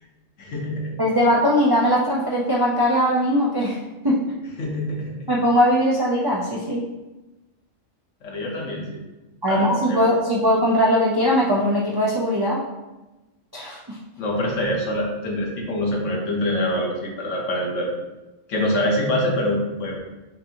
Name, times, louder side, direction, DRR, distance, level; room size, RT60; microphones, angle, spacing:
voice 1, 0.4-0.9 4.6-5.3 8.2-8.9 9.5-10.1 14.2-17.9 18.5-20.0, left 1 dB, 70° left, -2 dB, 1.3 m, -25 dB
voice 2, 1.0-3.8 4.0-4.2 5.3-6.8 9.4-12.6 13.5-14.0, equal, 40° right, -6 dB, 0.3 m, -20 dB
5.8 x 2.7 x 2.8 m, 1.1 s
omnidirectional pair, 1.3 m